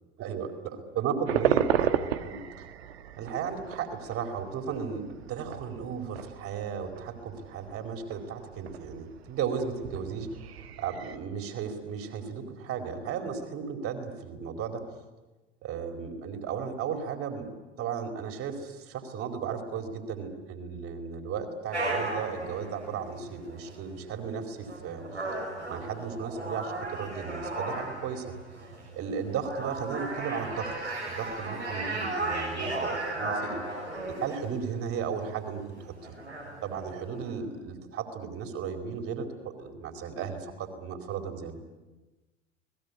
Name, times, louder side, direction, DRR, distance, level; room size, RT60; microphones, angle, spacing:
voice 1, 0.2-2.4 2.9-14.8 15.6-17.5 17.8-25.0 25.7-28.3 28.6-33.6 34.1-36.1 36.6-41.6, right 6 dB, 45° right, 5 dB, 4.7 m, -35 dB
sound 1, 1.3-11.2, right 9 dB, 70° right, 1.4 m, -34 dB
sound 2, 21.7-37.3, right 2 dB, 90° right, 6.8 m, -36 dB
29.5 x 20.5 x 8.5 m, 1.2 s
figure-of-eight pair, 75°, 33 cm